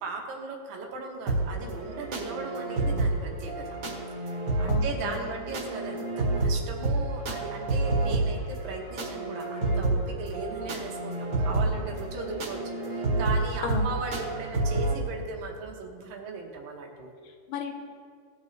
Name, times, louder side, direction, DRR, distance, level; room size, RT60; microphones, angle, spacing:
voice 1, 0.0-3.8 4.6-17.1, right 4 dB, 70° right, 1 dB, 2.7 m, -37 dB
sound 1, 1.3-15.0, right 2 dB, 45° right, 2.3 m, -29 dB
voice 2, 4.7-5.3 13.6-13.9 17.2-17.8, left 6 dB, 75° left, 4 dB, 2.4 m, -34 dB
18.5 x 6.6 x 3.3 m, 2.1 s
omnidirectional pair, 4.2 m